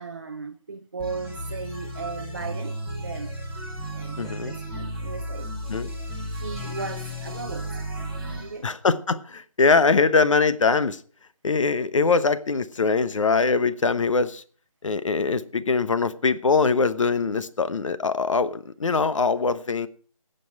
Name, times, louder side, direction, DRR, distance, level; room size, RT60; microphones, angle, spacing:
voice 1, 0.0-3.4 3.9-5.5 6.3-7.7 8.3-8.7, right 5 dB, 30° right, 0.6 m, -36 dB
sound 1, 1.0-8.5, equal, 5° left, 1.3 m, -34 dB
voice 2, 4.2-4.6 5.7-5.9 8.6-11.0 11.4-14.4 14.8-19.9, left 4 dB, 60° left, 1.0 m, -22 dB
18.5 x 7.9 x 4.6 m
figure-of-eight pair, 170°, 19 cm